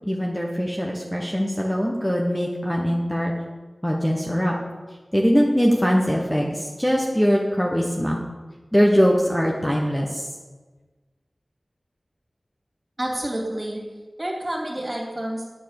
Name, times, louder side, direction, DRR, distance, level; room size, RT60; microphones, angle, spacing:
voice 1, 0.0-3.3 3.8-4.5 5.1-8.2 8.7-10.3, equal, 5° left, -1 dB, 1.2 m, -22 dB
voice 2, 13.0-13.8 14.2-15.4, right 1 dB, 30° right, -2 dB, 2.9 m, -29 dB
9.5 x 5.4 x 6.7 m, 1.3 s
wide cardioid pair, 45°, 0 cm